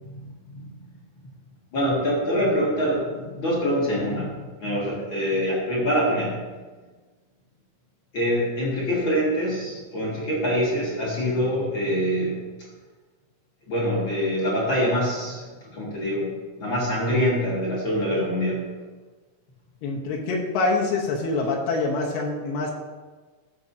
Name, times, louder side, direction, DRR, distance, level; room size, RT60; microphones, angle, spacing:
voice 1, 0.1-0.6 1.7-6.4 8.1-12.4 13.7-15.4 15.7-16.3 16.6-18.6, equal, 45° left, -6 dB, 1.7 m, -25 dB
voice 2, 19.8-22.7, left 3 dB, 85° left, -2 dB, 3.1 m, -25 dB
14.5 x 6.8 x 2.8 m, 1.3 s
omnidirectional pair, 4.4 m